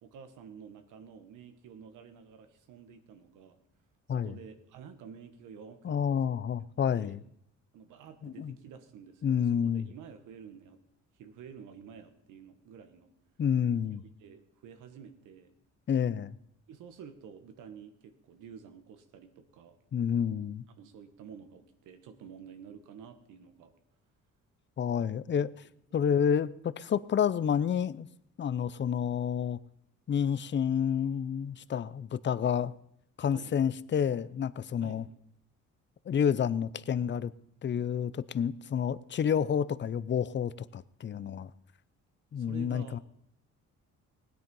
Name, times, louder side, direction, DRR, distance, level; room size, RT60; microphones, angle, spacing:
voice 1, 0.0-3.6 4.1-6.3 6.9-7.2 7.7-10.8 11.1-13.1 13.9-15.5 16.7-19.8 20.8-23.7 25.9-26.1 33.3-33.6 34.8-35.0 42.4-43.0, right 7 dB, 90° right, 1.4 m, -50 dB
voice 2, 5.8-7.2 8.2-8.5 9.2-9.9 13.4-14.0 15.9-16.4 19.9-20.6 24.8-25.5 25.9-28.1 28.4-29.6 30.1-32.7 33.2-35.1 36.1-37.3 37.6-41.5 42.3-43.0, left 8 dB, 40° left, 0.6 m, -29 dB
16.5 x 10.5 x 5.4 m
cardioid pair, 90°, 30 cm